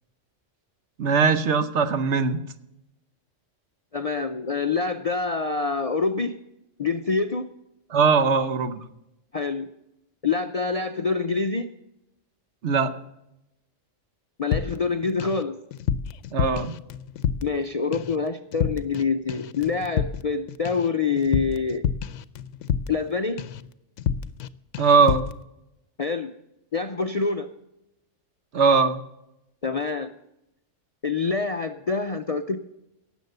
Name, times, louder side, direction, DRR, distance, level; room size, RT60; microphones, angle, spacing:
voice 1, 1.0-2.4 7.9-8.8 12.6-12.9 16.3-16.8 24.8-25.3 28.5-29.0, right 5 dB, 65° right, 11 dB, 1.1 m, -20 dB
voice 2, 3.9-6.4 6.8-7.5 8.3-8.5 9.3-9.7 10.2-11.7 14.4-15.6 17.4-21.8 22.9-23.4 26.0-26.3 26.7-27.5 29.6-30.1 31.0-32.6, left 4 dB, 45° left, 7 dB, 0.5 m, -26 dB
sound 1, 14.5-15.4 15.7-17.7 17.9-18.2 18.5-19.0 19.3-23.1 23.4-23.7 24.0-24.5 24.7-25.4, left 8 dB, 75° left, 0.9 m, -29 dB
17.5 x 7.3 x 6.7 m, 0.87 s
omnidirectional pair, 1.3 m